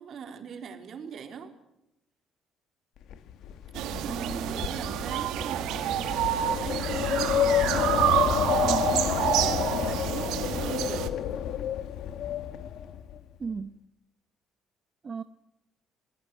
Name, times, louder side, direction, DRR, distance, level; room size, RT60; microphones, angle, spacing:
voice 1, 0.0-1.5 3.9-6.2 6.6-7.9 8.3-11.0, right 6 dB, 50° right, 4.0 m, -41 dB
Wind, 3.1-13.2, left 10 dB, 75° left, 1.7 m, -29 dB
sound 1, 3.7-11.1, right 12 dB, 90° right, 1.9 m, -28 dB
voice 2, 4.0-4.7 8.6-8.9 13.4-13.8 15.0-15.2, right 5 dB, 30° right, 0.9 m, -35 dB
27.0 x 18.5 x 9.2 m
cardioid pair, 140°, 0 cm